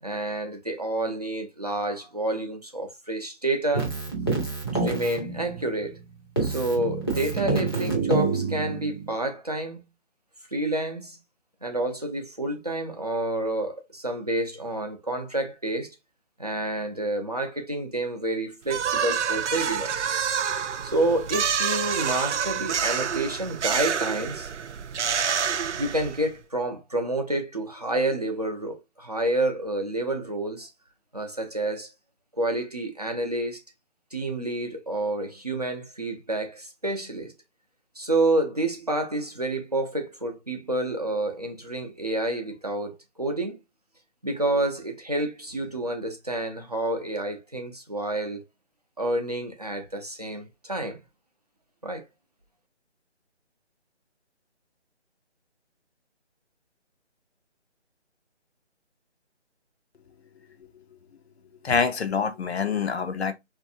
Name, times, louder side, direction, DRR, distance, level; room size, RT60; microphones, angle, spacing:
voice 1, 0.0-3.9 4.7-6.0 6.4-9.8 10.5-11.2 11.6-16.0 16.4-20.1 20.8-24.5 25.8-30.7 31.1-31.9 32.4-33.6 34.1-37.3 38.0-43.6 44.2-48.4 49.0-51.0 51.8-52.1, right 2 dB, 35° right, 0.5 m, -29 dB
Keyboard (musical), 3.7-6.0 6.4-9.1, right 4 dB, 20° left, 0.6 m, -27 dB
sound 1, 18.7-26.3, right 7 dB, 85° right, 0.5 m, -27 dB
voice 2, 61.6-63.3, left 5 dB, 65° left, 0.6 m, -25 dB
3.2 x 2.5 x 2.6 m
hypercardioid pair, 170°, 34 cm